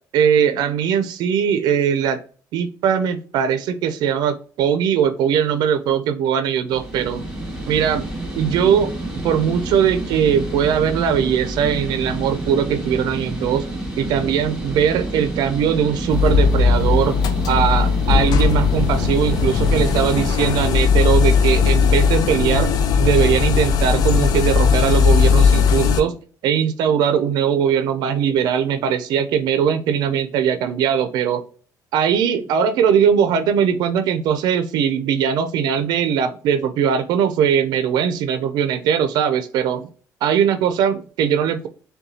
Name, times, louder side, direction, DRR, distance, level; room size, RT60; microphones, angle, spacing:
voice 1, 0.1-2.2 2.5-7.2 7.7-8.1 8.4-8.9 9.2-13.6 14.0-17.2 17.5-22.7 23.0-26.2 26.4-31.4 31.9-39.9 40.2-41.7, right 8 dB, 80° right, 9 dB, 0.5 m, -20 dB
sound 1, 6.7-20.3, right 1 dB, 5° right, 1.3 m, -29 dB
sound 2, 16.1-26.0, left 6 dB, 70° left, 0.5 m, -17 dB
6.6 x 2.2 x 2.7 m, 0.42 s
cardioid pair, 115°, 7 cm